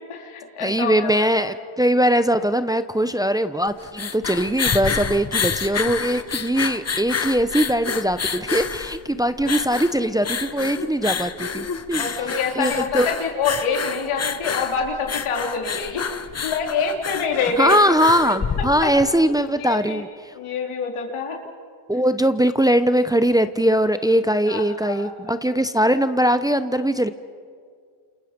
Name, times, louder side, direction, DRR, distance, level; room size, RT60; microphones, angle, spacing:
voice 1, 0.1-1.5 12.0-16.0 16.4-17.8 18.3-18.4 18.8-18.9 19.6-20.0 20.3-21.4 24.4-25.4, left 5 dB, 80° left, 1 dB, 3.6 m, -26 dB
voice 2, 0.6-12.2 12.6-13.1 17.6-20.3 21.9-27.1, equal, 10° right, 10 dB, 0.7 m, -21 dB
sound 1, 3.7-19.1, left 6 dB, 30° left, 1.2 m, -28 dB
29.5 x 28.0 x 5.2 m, 2.1 s
cardioid pair, 95°, 49 cm